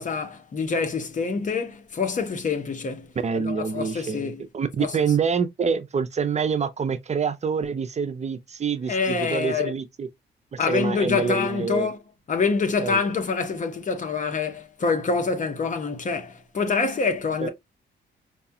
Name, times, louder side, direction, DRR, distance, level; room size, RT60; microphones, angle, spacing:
voice 1, 0.0-4.4 4.8-5.0 8.9-9.7 10.6-12.0 12.3-17.5, left 4 dB, 40° left, 0.8 m, -26 dB
voice 2, 3.2-10.1 10.5-11.9 12.8-13.0 17.4-17.5, right 6 dB, 35° right, 0.5 m, -26 dB
4.7 x 2.3 x 2.7 m
cardioid pair, 90°, 20 cm